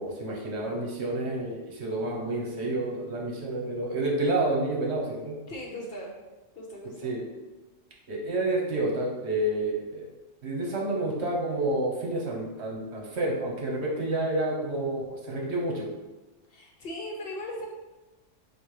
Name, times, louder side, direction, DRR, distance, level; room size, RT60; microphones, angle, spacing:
voice 1, 0.0-5.4 7.0-7.2 8.1-10.1 10.4-15.9, right 2 dB, 60° right, -2 dB, 1.1 m, -29 dB
voice 2, 5.5-6.1 6.5-7.1 16.5-17.7, left 1 dB, 55° left, -1 dB, 0.9 m, -38 dB
4.2 x 2.6 x 4.7 m, 1.2 s
omnidirectional pair, 1.3 m